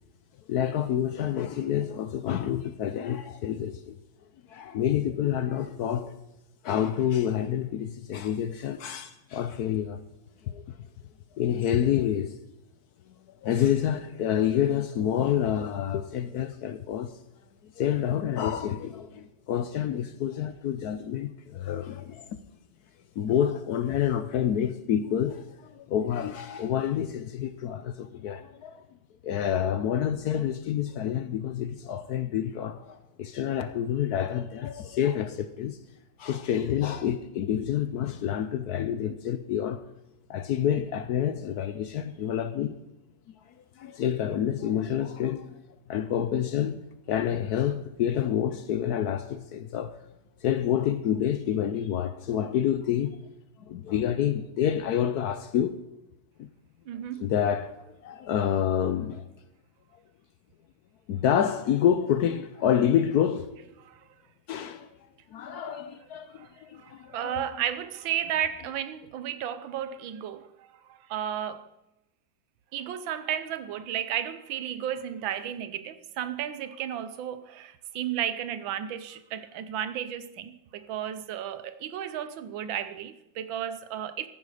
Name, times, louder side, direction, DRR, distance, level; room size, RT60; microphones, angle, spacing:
voice 1, 0.5-4.0 4.5-6.1 6.6-10.0 10.4-10.6 11.3-12.4 13.4-17.1 17.8-22.3 23.2-28.8 29.2-35.8 36.2-39.8 40.3-42.8 43.8-45.6 45.9-46.8 47.1-50.0 50.4-53.2 53.7-55.8 56.4-56.5 57.2-59.2 61.1-63.7 64.5-64.9 65.3-67.4, left 9 dB, 65° left, 1.0 m, -28 dB
voice 2, 56.9-57.3 63.8-64.0 65.5-65.8 66.4-66.5 66.8-70.5 70.9-71.7 72.7-84.3, right 10 dB, 85° right, 1.6 m, -33 dB
14.5 x 11.0 x 4.9 m
omnidirectional pair, 2.1 m